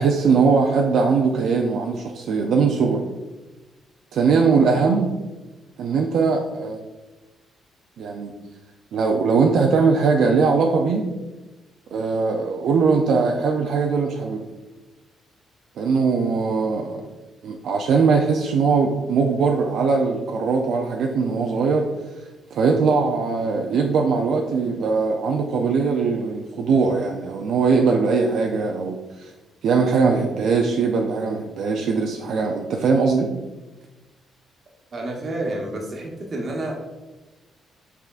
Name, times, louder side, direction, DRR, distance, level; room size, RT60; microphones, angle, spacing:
voice 1, 0.0-3.0 4.1-5.1 5.8-6.8 8.0-8.3 8.9-11.1 11.9-14.4 15.8-17.0 17.4-21.9 22.5-29.3 29.6-33.3, right 4 dB, 70° right, 1 dB, 0.4 m, -20 dB
voice 2, 34.9-36.7, right 1 dB, 40° right, 1 dB, 0.9 m, -29 dB
5.6 x 3.7 x 2.4 m, 1.1 s
cardioid pair, 110°, 0 cm